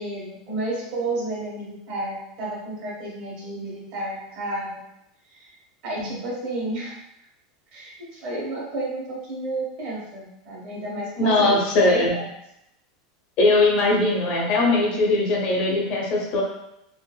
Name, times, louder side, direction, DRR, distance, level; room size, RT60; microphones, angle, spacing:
voice 1, 0.0-4.8 5.3-5.5 5.8-7.0 7.7-11.6 11.8-12.2, right 2 dB, 50° right, -4 dB, 1.1 m, -31 dB
voice 2, 11.2-12.1 13.4-16.4, left 2 dB, 50° left, -2 dB, 0.8 m, -20 dB
2.5 x 2.5 x 2.2 m, 0.80 s
supercardioid pair, 140°, 3 cm